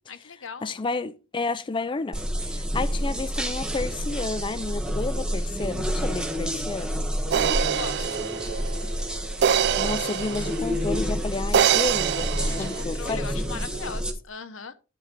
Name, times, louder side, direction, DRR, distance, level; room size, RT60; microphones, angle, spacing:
voice 1, 0.1-0.8 7.5-8.3 12.5-14.7, left 5 dB, 80° left, 1.0 m, -39 dB
voice 2, 0.6-7.0 9.8-12.3 12.6-13.2, left 3 dB, 25° left, 0.4 m, -31 dB
sound 1, 2.1-14.1, equal, 5° right, 1.3 m, -29 dB
sound 2, 7.3-10.8 11.5-12.8, right 9 dB, 60° right, 0.3 m, -25 dB
11.0 x 4.4 x 5.2 m
head